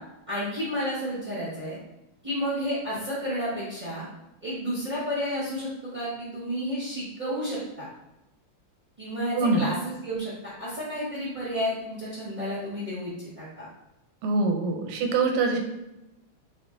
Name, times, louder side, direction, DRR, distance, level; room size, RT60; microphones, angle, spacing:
voice 1, 0.3-1.8 2.2-4.0 4.4-7.9 9.0-10.3 10.6-13.7, equal, 55° right, -9 dB, 0.4 m, -31 dB
voice 2, 9.3-9.7 14.2-15.6, right 3 dB, 90° right, 3 dB, 1.6 m, -24 dB
3.5 x 2.2 x 3.6 m, 0.92 s
omnidirectional pair, 2.4 m